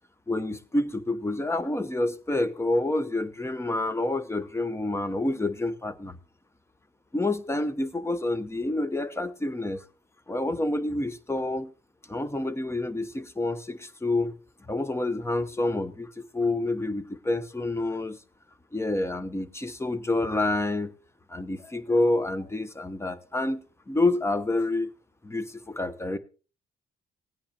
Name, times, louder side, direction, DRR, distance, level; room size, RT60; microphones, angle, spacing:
voice 1, 0.3-6.2 7.1-9.8 10.3-11.7 12.1-14.3 14.7-18.2 18.7-20.9 21.3-23.6 23.9-24.9 25.2-26.2, left 2 dB, 15° left, 1.0 m, -28 dB
17.5 x 9.7 x 2.9 m
cardioid pair, 90°, 20 cm